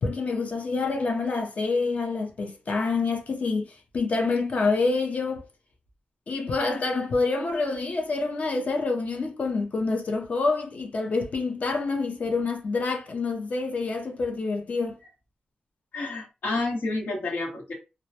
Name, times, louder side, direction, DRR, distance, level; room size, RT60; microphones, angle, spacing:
voice 1, 0.0-5.4 6.3-15.0, left 3 dB, 50° left, 0.5 m, -27 dB
voice 2, 15.9-17.7, left 2 dB, 85° left, 1.1 m, -29 dB
2.1 x 2.1 x 2.7 m
wide cardioid pair, 155°, 3 cm